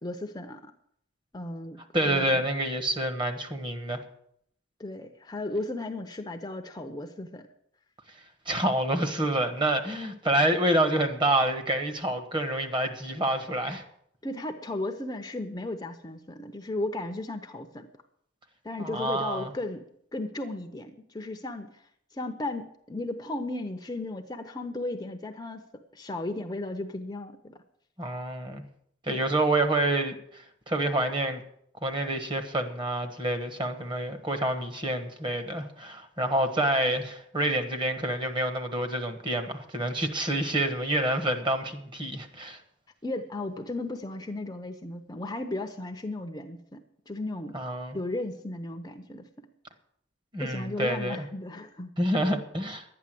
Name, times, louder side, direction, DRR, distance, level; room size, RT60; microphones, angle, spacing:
voice 1, 0.0-0.7 1.3-2.4 4.8-7.5 14.2-17.9 18.6-21.8 22.1-25.6 25.9-27.6 29.1-29.2 43.0-47.6 47.9-49.5 50.4-51.9, left 2 dB, 20° left, 6 dB, 0.7 m, -35 dB
voice 2, 1.9-4.0 8.5-13.8 18.8-19.5 28.0-28.6 29.0-31.4 31.8-42.6 47.5-48.0 50.3-51.3 52.0-52.8, right 1 dB, 25° right, 8 dB, 1.4 m, -28 dB
11.5 x 9.7 x 7.6 m, 0.71 s
head